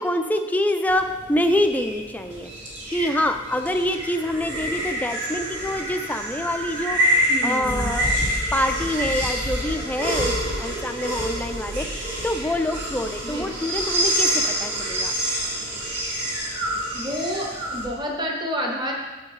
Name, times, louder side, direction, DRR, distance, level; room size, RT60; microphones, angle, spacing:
voice 1, 0.0-2.5 2.9-8.2 8.5-15.1, left 1 dB, 10° left, 6 dB, 0.4 m, -26 dB
sound 1, 0.9-17.9, equal, 65° right, 2.3 m, -27 dB
voice 2, 7.3-7.9 13.2-13.5 16.9-18.9, equal, 20° right, 0 dB, 0.9 m, -29 dB
9.4 x 7.3 x 3.2 m, 1.3 s
head